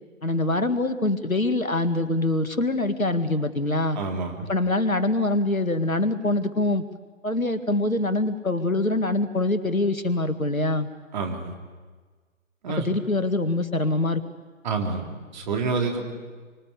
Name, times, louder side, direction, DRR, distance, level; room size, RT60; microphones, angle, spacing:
voice 1, 0.2-4.0 4.5-6.8 7.2-10.9 12.8-14.2, left 2 dB, 85° left, 10 dB, 2.0 m, -24 dB
voice 2, 4.0-4.5 11.1-11.5 12.6-12.9 14.6-16.0, right 4 dB, 35° right, 3 dB, 3.3 m, -28 dB
25.0 x 25.0 x 8.4 m, 1.4 s
figure-of-eight pair, 135°, 40 cm